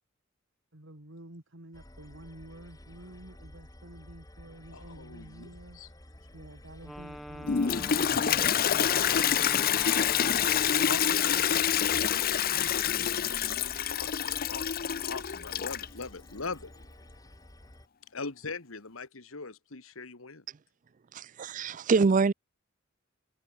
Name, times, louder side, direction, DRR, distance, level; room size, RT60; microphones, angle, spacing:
voice 1, 0.7-5.8 6.3-9.9 11.2-11.5 12.4-13.4, right 1 dB, 65° right, 3.3 m, -50 dB
sound 1, 1.7-17.9, left 1 dB, 15° left, 2.2 m, -51 dB
voice 2, 4.7-5.5 5.8-5.9 10.8-11.3 13.9-16.7 18.1-20.4, left 4 dB, 80° left, 1.8 m, -41 dB
Wind instrument woodwind instrument, 6.8-11.2, equal, ahead, 1.3 m, -44 dB
Toilet flush, 7.4-16.0, left 9 dB, 45° left, 0.6 m, -27 dB
voice 3, 21.1-22.3, right 4 dB, 40° right, 0.4 m, -25 dB
head